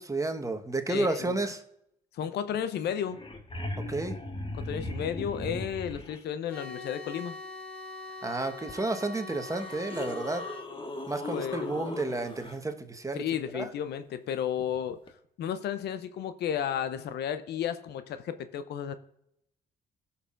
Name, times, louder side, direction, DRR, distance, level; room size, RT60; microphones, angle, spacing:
voice 1, 0.0-1.6 3.9-4.1 8.2-10.4 11.1-13.2 13.5-13.7, right 2 dB, 15° right, 6 dB, 1.2 m, -31 dB
voice 2, 0.9-1.4 2.1-3.2 4.5-7.4 11.3-11.9 13.2-15.0 15.4-18.9, left 9 dB, 65° left, 12 dB, 0.7 m, -33 dB
sound 1, 2.8-2.9 3.1-6.2 8.7-8.8 9.4-12.6 15.1-15.2, left 1 dB, 30° left, 1.4 m, -38 dB
sound 2, 6.5-10.7, left 3 dB, 5° left, 3.5 m, -43 dB
16.0 x 5.7 x 2.5 m, 0.78 s
hypercardioid pair, 55°, 19 cm